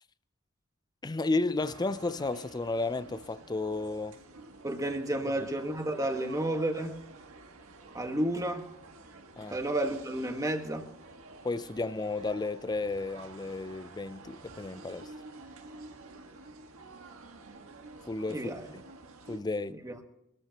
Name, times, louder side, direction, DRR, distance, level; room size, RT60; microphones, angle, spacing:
voice 1, 1.0-4.2 9.4-9.6 11.4-15.1 18.1-18.8 19.3-19.8, left 3 dB, 20° left, 0.4 m, -33 dB
sound 1, 1.6-19.4, right 3 dB, 65° right, 1.7 m, -50 dB
voice 2, 4.6-7.0 7.9-8.7 9.5-10.8 18.3-18.6 19.8-19.9, right 1 dB, 15° right, 1.5 m, -31 dB
23.5 x 13.5 x 2.9 m
head